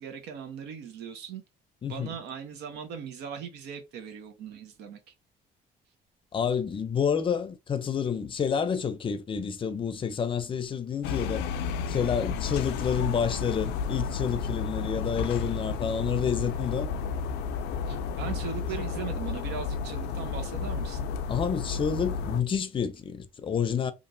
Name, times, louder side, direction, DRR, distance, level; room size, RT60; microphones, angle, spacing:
voice 1, 0.0-1.4 1.9-5.0 17.9-21.0, right 7 dB, 85° right, 0.8 m, -39 dB
voice 2, 1.8-2.1 6.3-11.4 11.9-16.9 21.3-23.9, left 7 dB, 30° left, 0.5 m, -29 dB
sound 1, 11.0-22.4, left 5 dB, 85° left, 0.4 m, -32 dB
2.9 x 2.5 x 2.6 m
cardioid pair, 110°, 17 cm